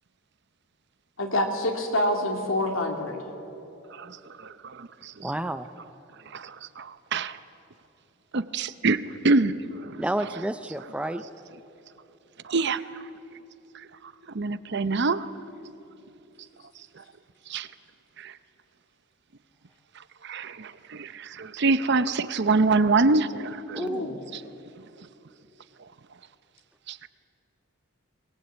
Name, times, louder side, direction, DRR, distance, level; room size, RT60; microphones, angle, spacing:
voice 1, 1.2-3.2 23.7-24.2, left 1 dB, 75° left, 3 dB, 2.8 m, -27 dB
voice 2, 3.9-5.1 6.3-7.4 8.3-10.0 12.4-12.8 14.3-15.3 17.5-17.7 18.2-18.3 20.2-23.8 26.9-27.0, right 3 dB, 55° right, 14 dB, 0.7 m, -25 dB
voice 3, 5.2-5.7 10.0-11.2 23.7-24.0, right 1 dB, 5° right, 11 dB, 0.5 m, -30 dB
23.0 x 20.5 x 8.2 m, 2.9 s
head